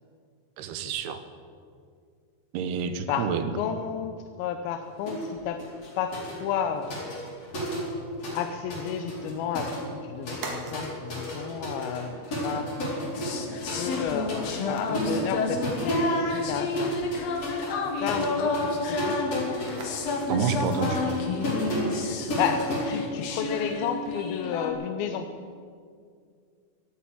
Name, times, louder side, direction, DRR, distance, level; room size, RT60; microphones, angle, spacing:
voice 1, 0.6-1.2 2.5-3.5 20.3-21.2, right 6 dB, 80° right, 9 dB, 3.0 m, -28 dB
voice 2, 3.1-5.6 6.0-7.0 8.3-13.3 13.7-17.0 18.0-19.2 22.1-25.3, left 8 dB, 75° left, 7 dB, 2.4 m, -32 dB
sound 1, 5.1-5.3 5.6-8.4 8.7-23.7, equal, 40° left, 5.2 m, -33 dB
sound 2, 5.3-23.8, right 3 dB, 60° right, 3.2 m, -49 dB
sound 3, 13.1-24.7, left 4 dB, 60° left, 1.8 m, -31 dB
15.5 x 8.8 x 9.5 m, 2.2 s
omnidirectional pair, 4.7 m